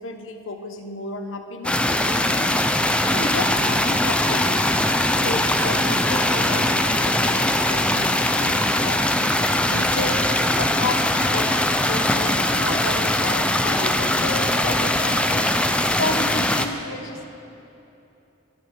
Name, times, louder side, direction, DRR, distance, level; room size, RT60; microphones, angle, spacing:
voice 1, 0.0-2.6 3.1-4.7 5.2-9.1 9.7-10.3 10.6-15.5 16.0-17.2, left 2 dB, 85° left, 5 dB, 1.3 m, -32 dB
sound 1, 1.6-16.7, left 1 dB, 5° left, 0.6 m, -21 dB
23.0 x 9.4 x 6.4 m, 2.9 s
head